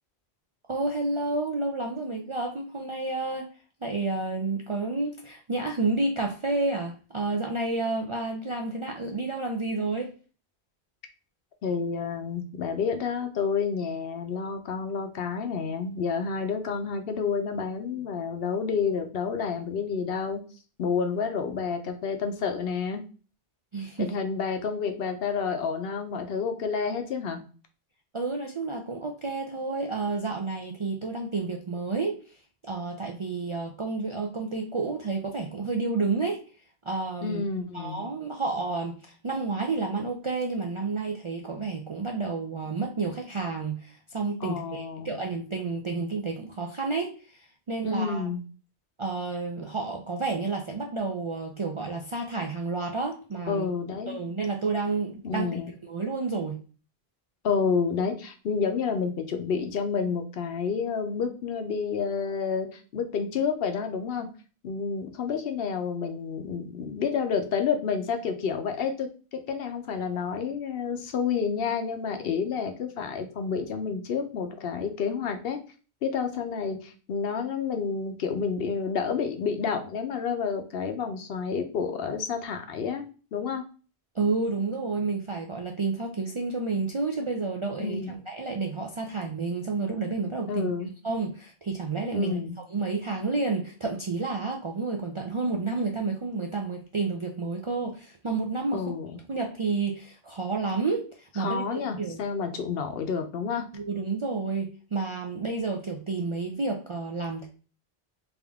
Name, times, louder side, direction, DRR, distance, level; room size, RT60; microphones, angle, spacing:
voice 1, 0.7-3.5 3.8-10.1 23.7-24.1 28.1-32.2 32.6-36.4 36.8-37.4 37.7-48.3 49.0-53.7 54.1-55.5 55.8-56.6 84.1-88.0 88.3-90.7 91.0-92.4 92.7-98.9 99.3-102.2 103.7-107.5, right 3 dB, 50° right, 1 dB, 0.4 m, -30 dB
voice 2, 11.6-20.4 20.8-23.0 24.0-27.4 37.2-38.1 44.4-45.1 47.8-48.4 53.5-54.3 55.2-55.7 57.4-64.3 64.6-75.6 76.0-83.1 83.3-83.6 87.8-88.2 90.5-90.9 92.1-92.6 98.7-99.2 101.4-103.7, left 6 dB, 70° left, 6 dB, 0.8 m, -29 dB
3.5 x 2.6 x 3.4 m, 0.36 s
omnidirectional pair, 1.1 m